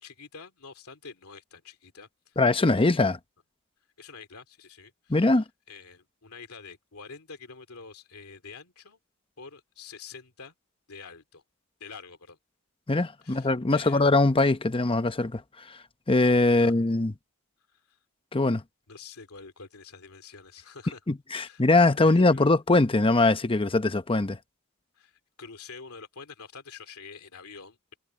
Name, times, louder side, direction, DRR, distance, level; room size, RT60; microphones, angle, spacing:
voice 1, 0.0-3.1 4.0-9.0 9.4-10.5 10.9-11.4 11.8-12.4 13.2-14.0 16.5-16.7 17.7-18.0 18.9-21.0 21.3-21.7 22.0-22.6 24.9-28.0, left 5 dB, 85° left, 2.5 m, -47 dB
voice 2, 2.4-3.2 5.1-5.4 12.9-15.4 15.7-15.8 16.1-17.1 18.3-18.6 21.1-24.4, left 2 dB, 25° left, 0.8 m, -22 dB
head